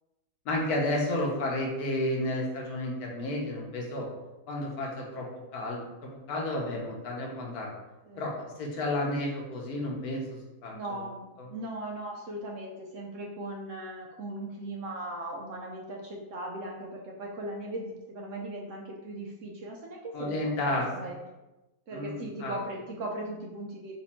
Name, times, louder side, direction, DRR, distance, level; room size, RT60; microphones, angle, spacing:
voice 1, 0.5-4.1 4.5-5.3 5.5-7.7 8.2-8.3 8.6-10.8 11.4-11.5 20.1-21.1 21.9-22.5, left 1 dB, 75° left, -1 dB, 1.3 m, -31 dB
voice 2, 10.7-21.2 21.9-24.0, right 1 dB, 65° right, -1 dB, 0.9 m, -38 dB
4.1 x 2.6 x 4.2 m, 1.0 s
omnidirectional pair, 1.7 m